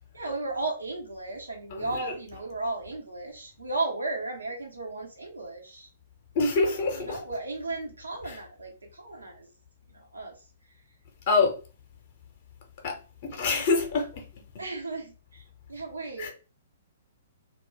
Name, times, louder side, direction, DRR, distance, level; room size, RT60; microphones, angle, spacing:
voice 1, 0.1-5.9 6.6-9.5 9.9-10.4 13.3-13.6 14.6-15.4 15.7-16.3, right 2 dB, 80° right, 0.9 m, -35 dB
voice 2, 1.7-2.1 6.3-7.2 8.3-8.4 11.3-11.6 12.8-14.3 14.5-14.6 16.2-16.3, left 4 dB, 45° left, 0.7 m, -26 dB
2.3 x 2.2 x 3.3 m
figure-of-eight pair, 115°, 0 cm